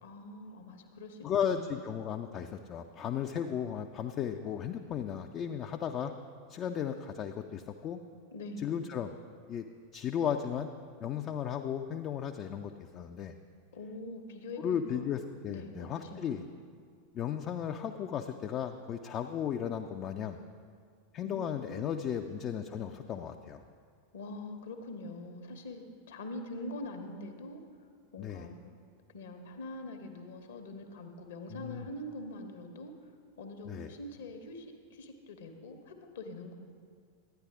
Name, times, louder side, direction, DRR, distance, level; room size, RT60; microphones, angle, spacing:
voice 1, 0.0-1.8 8.3-8.7 13.7-15.0 15.5-16.4 21.2-22.2 24.1-27.6 28.1-28.6 29.1-33.1 33.4-36.6, left 2 dB, 60° left, 5 dB, 0.9 m, -44 dB
voice 2, 1.2-6.1 6.5-8.0 8.6-9.1 9.5-9.6 9.9-10.7 11.0-13.3 14.6-16.4 17.1-20.4 21.1-23.6 28.2-28.5 31.5-31.8 33.7-33.9, left 8 dB, 30° left, 5 dB, 0.3 m, -35 dB
11.5 x 9.6 x 3.5 m, 2.1 s
figure-of-eight pair, 90°, 0 cm